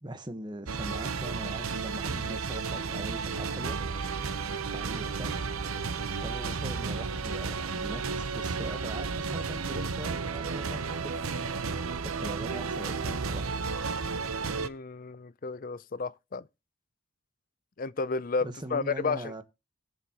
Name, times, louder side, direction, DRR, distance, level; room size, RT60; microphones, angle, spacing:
voice 1, 0.0-3.8 4.6-5.3 6.2-11.0 12.0-13.4 18.4-19.4, right 1 dB, 20° right, 1.1 m, -41 dB
sound 1, 0.7-14.7, right 4 dB, 85° right, 0.9 m, -33 dB
voice 2, 14.5-16.5 17.8-19.4, left 4 dB, 40° left, 0.5 m, -32 dB
20.5 x 6.8 x 2.9 m
head